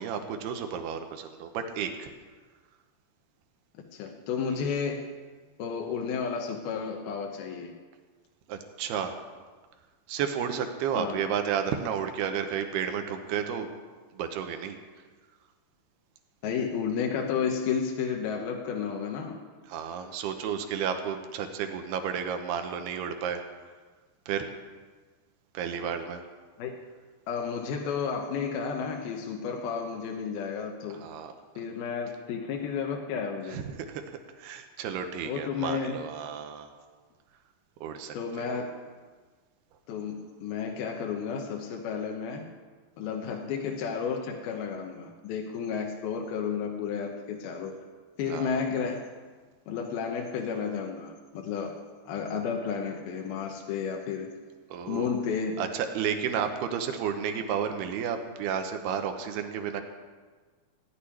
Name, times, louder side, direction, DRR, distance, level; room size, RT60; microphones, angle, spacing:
voice 1, 0.0-2.1 8.5-9.2 10.1-13.7 14.1-14.8 19.7-23.4 24.3-24.5 25.5-26.2 30.9-31.3 33.5-36.7 37.8-38.6 48.3-48.6 54.7-55.1 55.6-59.8, right 7 dB, 75° right, 6 dB, 2.6 m, -32 dB
voice 2, 3.8-5.1 5.6-7.7 10.9-11.3 16.4-19.4 26.6-26.8 27.3-31.1 31.6-33.8 35.2-36.0 38.1-38.7 39.9-42.5 43.0-47.8 48.2-49.1 49.7-51.7 52.1-54.3 54.9-55.6, left 6 dB, 70° left, 2 dB, 2.6 m, -32 dB
16.0 x 6.7 x 9.9 m, 1.4 s
omnidirectional pair, 5.3 m